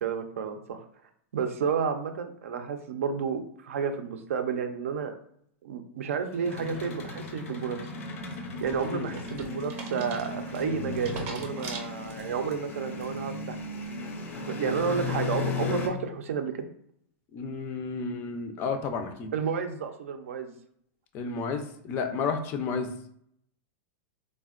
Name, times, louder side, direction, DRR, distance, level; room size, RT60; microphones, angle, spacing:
voice 1, 0.0-0.8 1.3-5.1 5.6-7.8 8.6-13.6 14.3-16.7 19.3-20.5, right 6 dB, 85° right, 7 dB, 0.4 m, -31 dB
sound 1, 6.3-15.9, left 3 dB, 80° left, 0.6 m, -35 dB
sound 2, 8.3-12.5 13.0-13.4, right 4 dB, 35° right, 0.6 m, -43 dB
voice 2, 17.3-19.3 21.1-22.9, left 5 dB, 30° left, 7 dB, 0.3 m, -31 dB
3.4 x 2.1 x 2.4 m, 0.68 s
supercardioid pair, 145°, 7 cm